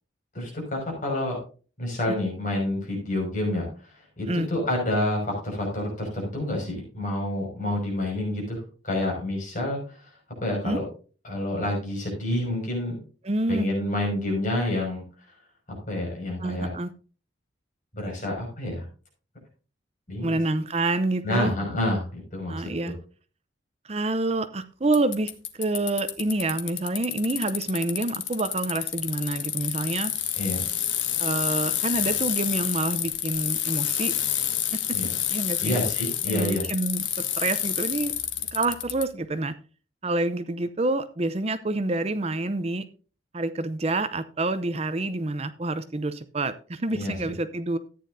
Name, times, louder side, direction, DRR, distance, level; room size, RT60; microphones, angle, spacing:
voice 1, 0.3-1.4 1.8-10.1 10.4-10.8 11.2-13.0 13.5-15.0 15.7-16.7 17.9-18.8 20.1-20.4 21.2-22.6 22.8-22.9 30.4-30.6 34.9-35.1 35.6-36.6 46.9-47.3, left 1 dB, 40° left, -1 dB, 5.6 m, -28 dB
voice 2, 13.2-13.7 16.4-16.9 20.2-21.5 22.5-22.9 23.8-30.1 31.2-34.1 34.7-35.0 35.3-35.8 36.3-38.1 38.5-39.6 40.0-42.8 43.3-47.8, right 2 dB, 30° right, 12 dB, 0.6 m, -27 dB
Bicycle, 24.9-39.0, left 11 dB, 75° left, 1.3 m, -28 dB
14.0 x 9.5 x 2.6 m, 0.36 s
head